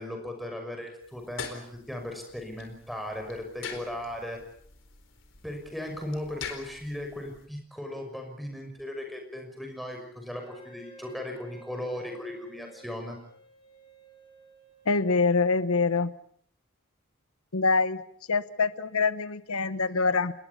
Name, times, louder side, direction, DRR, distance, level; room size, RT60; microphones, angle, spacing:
voice 1, 0.0-4.4 5.4-13.2, left 1 dB, ahead, 2 dB, 6.0 m, -37 dB
sound 1, 1.0-7.5, left 6 dB, 60° left, 4.3 m, -44 dB
Wind instrument woodwind instrument, 10.4-15.4, equal, 25° left, 7.3 m, -52 dB
voice 2, 14.9-16.1 17.5-18.0 18.3-20.3, left 4 dB, 90° left, 14 dB, 1.0 m, -25 dB
28.0 x 21.0 x 7.0 m, 0.64 s
head